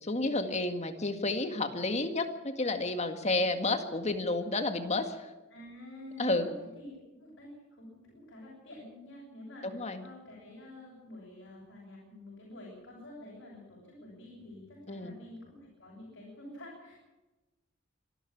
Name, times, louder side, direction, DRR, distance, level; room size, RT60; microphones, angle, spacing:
voice 1, 0.0-5.3 6.2-6.5 9.6-10.0 14.9-15.1, left 2 dB, 35° left, 7 dB, 2.0 m, -31 dB
voice 2, 5.5-17.0, left 1 dB, 65° left, -4 dB, 7.3 m, -49 dB
25.5 x 12.0 x 8.7 m, 1.1 s
head